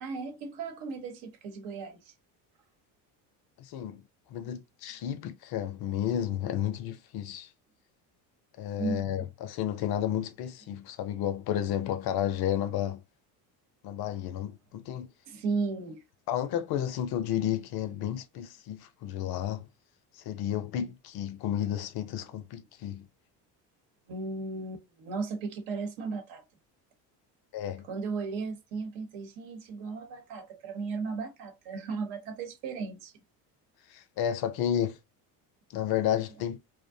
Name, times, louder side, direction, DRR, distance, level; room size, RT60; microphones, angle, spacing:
voice 1, 0.0-2.1 4.4-4.5 8.8-9.1 15.3-16.0 24.1-26.4 27.9-33.1, right 4 dB, 70° right, 1.0 m, -35 dB
voice 2, 3.6-4.0 4.3-7.5 8.6-13.0 13.8-15.1 16.3-19.7 20.2-23.1 27.5-27.9 33.9-35.0 35.7-36.6, left 10 dB, 55° left, 0.5 m, -32 dB
2.5 x 2.1 x 2.6 m
supercardioid pair, 85°, 46 cm